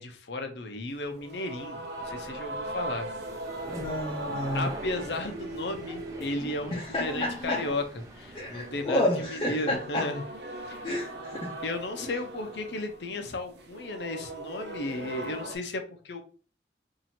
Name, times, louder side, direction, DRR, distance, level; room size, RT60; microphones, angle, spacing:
voice 1, 0.0-3.1 4.5-7.8 8.1-10.2 10.7-10.9 11.6-16.2, left 2 dB, 80° left, 0.7 m, -34 dB
sound 1, 0.9-15.6, right 1 dB, 75° right, 0.6 m, -40 dB
sound 2, 2.0-8.9, right 1 dB, 20° right, 0.6 m, -43 dB
voice 2, 3.7-4.7 6.7-7.6 8.3-10.1 10.8-11.5, left 1 dB, 25° left, 0.6 m, -30 dB
2.9 x 2.7 x 4.2 m
head